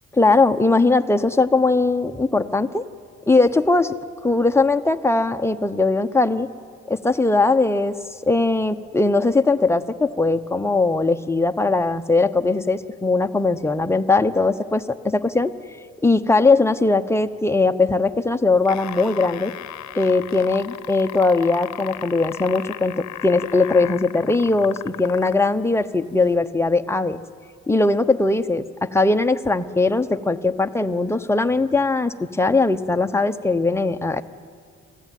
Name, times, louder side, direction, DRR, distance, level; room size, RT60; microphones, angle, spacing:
voice 1, 0.1-2.8 3.3-3.9 4.2-6.5 6.9-7.9 8.2-15.5 16.0-19.5 19.9-27.2 27.7-34.2, left 3 dB, 10° left, 7 dB, 0.9 m, -20 dB
sound 1, 18.5-25.5 26.3-26.4, left 11 dB, 65° left, 0.9 m, -35 dB
24.5 x 16.0 x 9.3 m, 2.1 s
cardioid pair, 90°, 30 cm